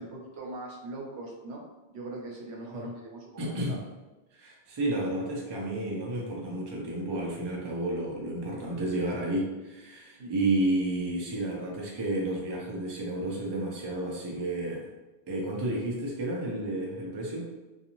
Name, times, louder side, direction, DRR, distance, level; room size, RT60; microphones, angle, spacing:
voice 1, 0.0-1.6 1.9-3.5 10.2-10.3, right 2 dB, 80° right, -2 dB, 0.9 m, -41 dB
voice 2, 3.4-3.8 4.3-14.9 15.3-17.5, right 1 dB, 35° right, -2 dB, 0.4 m, -31 dB
2.5 x 2.4 x 2.9 m, 1.1 s
omnidirectional pair, 1.1 m